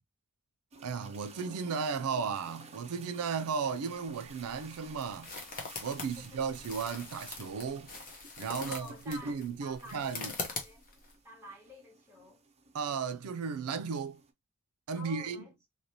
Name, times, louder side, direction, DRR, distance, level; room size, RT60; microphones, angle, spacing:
sound 1, 0.7-14.3, right 3 dB, 30° right, 0.7 m, -54 dB
voice 1, 0.8-5.3 5.8-7.9 8.4-10.3 12.7-14.2 14.9-15.4, right 5 dB, 90° right, 0.4 m, -35 dB
sound 2, 3.9-11.1, left 4 dB, 40° left, 1.0 m, -43 dB
voice 2, 6.1-6.5 8.6-10.8 11.2-12.4 14.9-15.5, left 1 dB, 10° right, 1.4 m, -51 dB
3.2 x 2.8 x 2.7 m
head